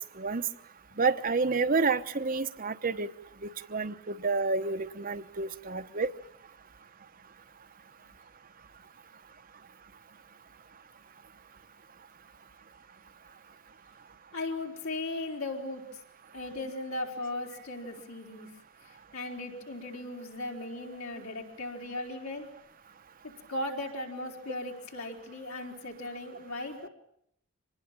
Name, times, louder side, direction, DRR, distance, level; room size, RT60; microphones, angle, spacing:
voice 1, 1.0-3.1 3.7-6.1, right 4 dB, 40° right, 9 dB, 0.9 m, -29 dB
voice 2, 14.3-15.8 16.3-18.5 19.1-22.4 23.2-26.8, left 2 dB, 75° left, 0 dB, 4.6 m, -37 dB
26.0 x 19.5 x 9.1 m, 0.73 s
head